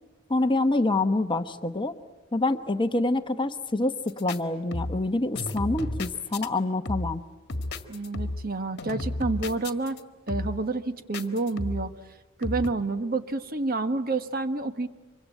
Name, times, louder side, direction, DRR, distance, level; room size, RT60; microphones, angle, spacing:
voice 1, 0.3-1.9 2.3-7.2, left 2 dB, 20° left, 9 dB, 1.0 m, -26 dB
sound 1, 4.1-4.4 4.7-5.1 5.3-6.5 6.8-7.2 7.5-8.5 8.8-10.0 10.3-10.7 11.1-11.9 12.4-12.7, left 1 dB, 55° left, 1.8 m, -33 dB
voice 2, 7.9-10.0 10.3-11.9 12.4-14.9, right 3 dB, 45° right, 10 dB, 1.2 m, -29 dB
25.5 x 24.0 x 9.0 m, 1.1 s
head